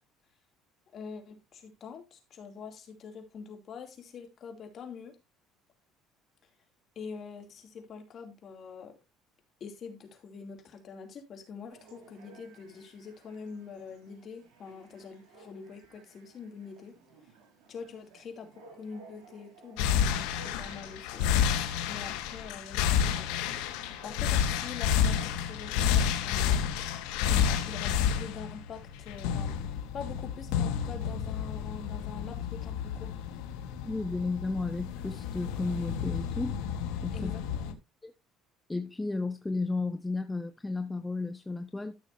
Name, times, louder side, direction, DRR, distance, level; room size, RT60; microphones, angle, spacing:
voice 1, 0.9-5.2 7.0-8.9 9.6-16.9 17.7-21.3 21.9-23.5 24.0-26.7 27.5-33.2 37.1-37.7, left 5 dB, 40° left, 2.6 m, -45 dB
Chatter / Bark / Livestock farm animals working animals, 11.7-25.3, right 3 dB, 85° right, 6.2 m, -57 dB
sound 1, 19.8-37.7, left 8 dB, 90° left, 1.3 m, -30 dB
voice 2, 33.9-36.6 37.0-37.3 38.0-38.1 38.7-42.0, left 3 dB, 10° left, 0.6 m, -33 dB
13.0 x 6.6 x 2.7 m
cardioid pair, 130°, 0 cm